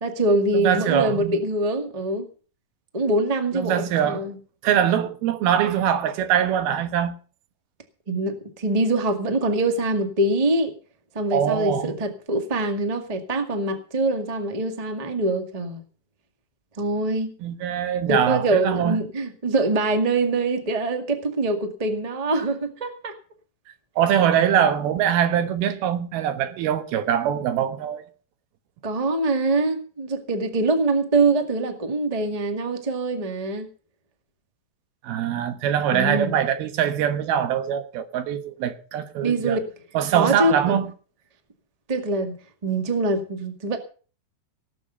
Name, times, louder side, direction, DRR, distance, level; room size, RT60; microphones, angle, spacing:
voice 1, 0.0-2.2 2.9-4.4 8.1-10.7 11.1-15.8 16.8-17.3 18.1-23.1 28.8-33.7 35.9-36.3 39.2-39.6 40.1-40.8 41.9-43.8, right 2 dB, 20° right, 0.9 m, -24 dB
voice 2, 0.5-1.4 3.5-4.3 4.6-7.2 11.3-12.0 17.4-19.0 24.0-28.0 35.0-39.6 39.9-40.9, right 9 dB, 90° right, 3.2 m, -23 dB
18.5 x 7.4 x 6.9 m
omnidirectional pair, 4.2 m